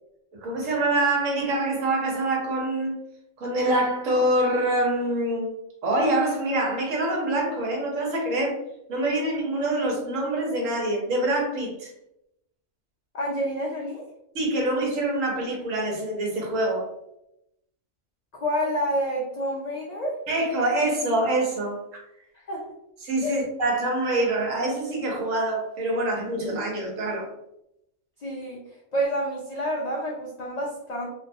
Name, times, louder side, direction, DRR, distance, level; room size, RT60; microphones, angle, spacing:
voice 1, 0.3-2.9 3.4-5.5 5.8-8.6 8.9-11.9 14.3-16.9 20.3-21.8 23.0-27.3, right 1 dB, 85° right, -1 dB, 1.2 m, -25 dB
voice 2, 13.1-14.1 18.3-20.2 22.3-22.7 23.2-23.4 28.2-28.6 28.9-31.1, equal, 90° left, -3 dB, 0.3 m, -28 dB
2.6 x 2.2 x 2.6 m, 0.82 s
omnidirectional pair, 1.3 m